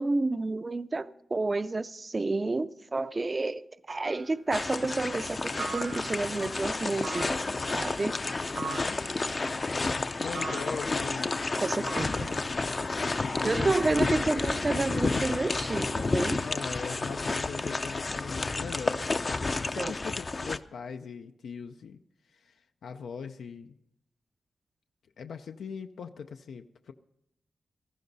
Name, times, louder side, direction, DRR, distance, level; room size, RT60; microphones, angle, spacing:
voice 1, 0.0-7.5 7.7-8.2 11.6-12.3 13.4-16.5 19.8-19.9, right 3 dB, 25° right, 0.4 m, -30 dB
sound 1, 3.9-4.3 5.6-6.4 7.0-7.6 8.6-9.1 10.4-10.9 11.9-12.6, right 5 dB, 80° right, 2.1 m, -40 dB
sound 2, 4.5-20.6, left 3 dB, 30° left, 0.5 m, -31 dB
voice 2, 8.5-9.0 10.2-11.4 12.1-12.4 13.2-13.9 16.4-22.0 22.3-23.7 25.2-26.9, left 6 dB, 85° left, 0.5 m, -41 dB
17.5 x 14.5 x 4.0 m
wide cardioid pair, 125°, 0 cm